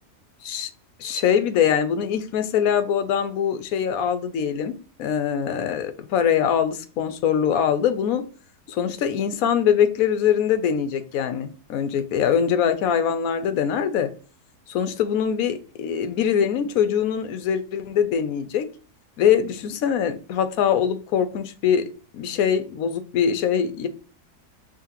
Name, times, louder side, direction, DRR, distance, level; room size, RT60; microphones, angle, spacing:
voice 1, 1.0-8.2 8.7-14.1 14.7-18.7 19.2-21.8 22.1-23.9, left 8 dB, 70° left, 11 dB, 1.0 m, -23 dB
4.8 x 3.1 x 2.9 m, 0.37 s
omnidirectional pair, 1.7 m